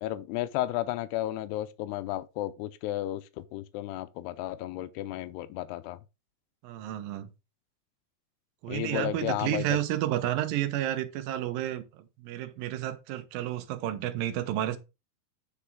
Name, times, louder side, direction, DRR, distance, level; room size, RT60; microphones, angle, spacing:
voice 1, 0.0-6.0 8.7-9.8, left 14 dB, 90° left, 2.7 m, -33 dB
voice 2, 6.6-7.3 8.6-14.8, right 13 dB, 75° right, 2.3 m, -31 dB
8.3 x 5.7 x 3.6 m
omnidirectional pair, 4.6 m